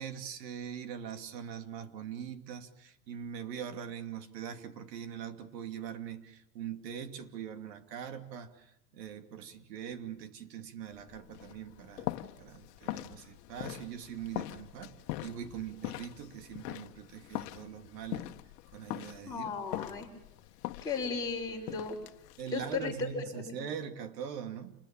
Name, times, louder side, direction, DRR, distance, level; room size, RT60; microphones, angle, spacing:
voice 1, 0.0-8.7 8.9-14.9 15.2-18.3 18.7-19.5 22.4-24.7, right 8 dB, 80° right, 8 dB, 2.8 m, -42 dB
sound 1, 10.9-23.1, left 16 dB, 70° left, 1.4 m, -42 dB
voice 2, 19.3-20.1 20.8-22.0 22.5-23.6, left 4 dB, 5° left, -3 dB, 6.0 m, -35 dB
29.0 x 21.5 x 8.8 m, 0.87 s
supercardioid pair, 150°, 49 cm